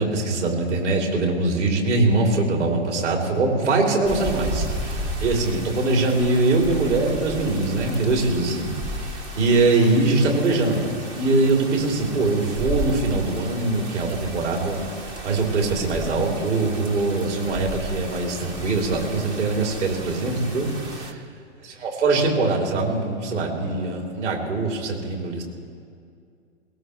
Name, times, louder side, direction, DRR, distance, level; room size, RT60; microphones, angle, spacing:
voice 1, 0.0-14.8 15.2-21.2 21.8-25.4, right 3 dB, 75° right, -1 dB, 3.7 m, -22 dB
sound 1, 4.0-21.1, right 1 dB, 10° right, 0.3 m, -34 dB
21.0 x 18.5 x 3.4 m, 2.3 s
hypercardioid pair, 130°, 36 cm